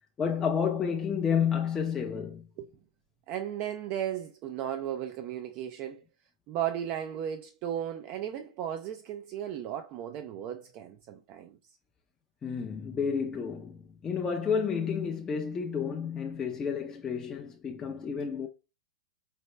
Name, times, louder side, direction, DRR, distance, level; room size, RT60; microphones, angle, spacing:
voice 1, 0.2-2.4 12.4-18.5, left 7 dB, 20° left, 0.5 m, -30 dB
voice 2, 3.3-6.0 6.5-11.6, right 10 dB, 40° right, 0.4 m, -35 dB
4.2 x 3.0 x 3.2 m
hypercardioid pair, 130°, 4 cm